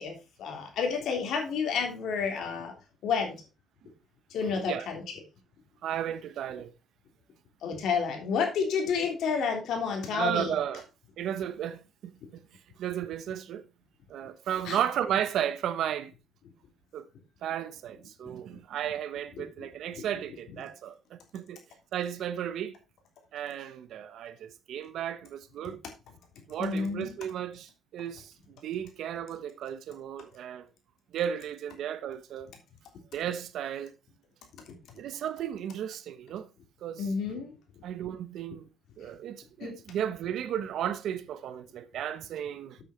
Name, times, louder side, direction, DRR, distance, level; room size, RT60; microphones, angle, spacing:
voice 1, 0.0-2.7 3.0-3.3 4.3-5.0 7.6-10.5 14.6-14.8 26.6-27.1 37.0-37.5 39.6-39.7, left 6 dB, 75° left, 3.2 m, -30 dB
voice 2, 5.8-6.7 10.1-10.8 11.2-12.5 12.8-13.6 14.1-16.1 16.9-17.0 17.4-21.6 21.9-22.7 23.3-25.8 26.5-30.7 31.1-32.5 33.1-33.9 35.0-36.5 36.8-37.1 37.8-38.7 39.0-42.8, right 10 dB, 75° right, 1.0 m, -34 dB
8.3 x 6.6 x 4.4 m
cardioid pair, 90°, 0 cm